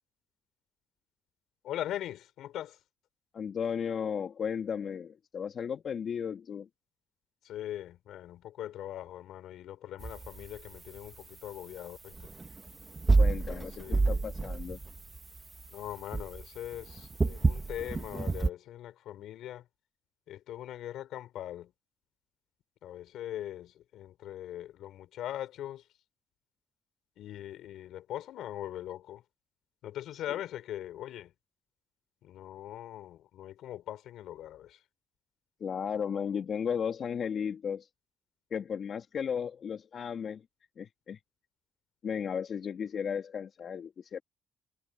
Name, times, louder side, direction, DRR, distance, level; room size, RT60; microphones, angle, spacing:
voice 1, 1.6-2.8 7.4-12.1 13.8-14.2 15.7-19.6 20.3-21.7 22.8-25.8 27.2-29.2 29.8-31.3 32.2-34.8, left 12 dB, 80° left, 4.2 m, -41 dB
voice 2, 3.3-6.7 13.2-14.8 30.3-30.4 35.6-37.9 38.5-40.4 40.8-41.2 42.0-44.2, left 7 dB, 55° left, 2.7 m, -35 dB
sound 1, 10.0-10.5 10.8-10.9 12.1-15.6 16.1-18.5, right 3 dB, 25° right, 1.3 m, -28 dB
cardioid pair, 90°, 0 cm